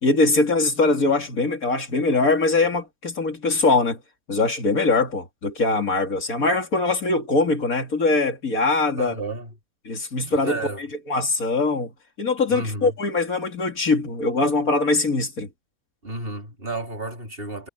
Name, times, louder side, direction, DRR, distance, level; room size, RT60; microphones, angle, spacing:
voice 1, 0.0-4.0 4.3-9.1 9.8-10.6 11.1-11.9 12.2-15.5, left 3 dB, 65° left, 3.3 m, -22 dB
voice 2, 9.0-9.5 10.3-10.8 12.5-12.9 16.0-17.7, right 2 dB, 35° right, 3.9 m, -31 dB
omnidirectional pair, 1.6 m